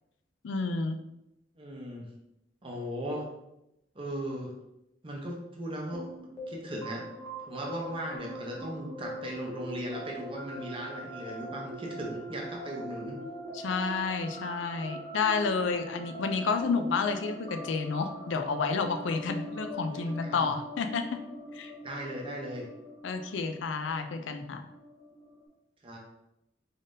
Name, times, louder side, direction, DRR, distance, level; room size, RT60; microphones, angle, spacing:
voice 1, 0.4-1.0 13.5-21.2 21.5-21.7 23.0-24.6, left 4 dB, 80° left, 7 dB, 0.4 m, -30 dB
voice 2, 1.6-2.1 2.6-3.3 3.9-4.5 5.0-6.1 6.5-7.1 7.5-13.2 19.9-20.5 21.8-22.7 25.8-26.0, equal, 30° right, -1 dB, 0.7 m, -37 dB
sound 1, 5.9-25.5, equal, 20° left, 0.8 m, -42 dB
3.9 x 3.6 x 2.6 m, 0.87 s
head